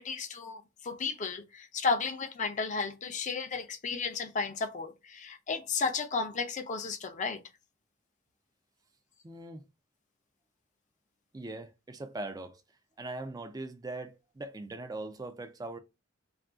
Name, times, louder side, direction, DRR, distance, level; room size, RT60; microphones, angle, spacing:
voice 1, 0.0-7.4, left 4 dB, 35° left, 0.5 m, -33 dB
voice 2, 9.2-9.6 11.3-12.6 13.0-15.8, right 2 dB, 20° right, 0.4 m, -40 dB
2.5 x 2.3 x 3.5 m
head